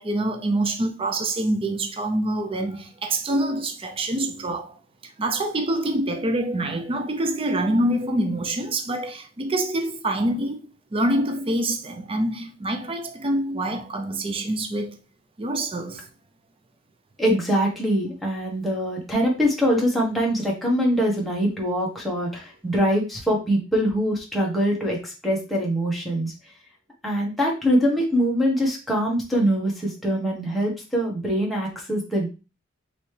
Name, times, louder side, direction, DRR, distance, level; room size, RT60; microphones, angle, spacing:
voice 1, 0.0-4.8 5.2-15.0 15.4-16.1, right 1 dB, 25° right, 0.5 m, -26 dB
voice 2, 17.2-26.3 27.0-32.3, equal, ahead, 1.4 m, -23 dB
5.3 x 3.1 x 3.2 m
head